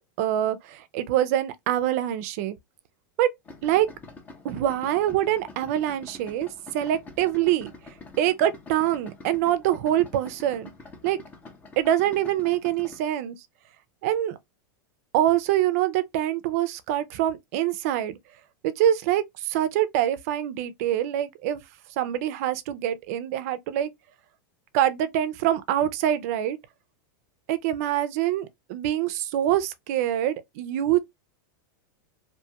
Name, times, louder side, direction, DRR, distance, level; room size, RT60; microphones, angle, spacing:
voice 1, 0.2-2.6 3.2-3.3 3.6-3.9 4.4-6.5 6.7-7.7 8.2-10.7 11.0-11.2 11.8-13.4 14.0-14.4 15.1-18.2 18.6-21.6 22.0-23.9 24.7-26.6 27.5-31.0, right 12 dB, 45° right, 0.4 m, -25 dB
Idling, 3.5-13.0, left 3 dB, 15° left, 0.4 m, -46 dB
2.6 x 2.3 x 2.8 m
supercardioid pair, 170°, 11 cm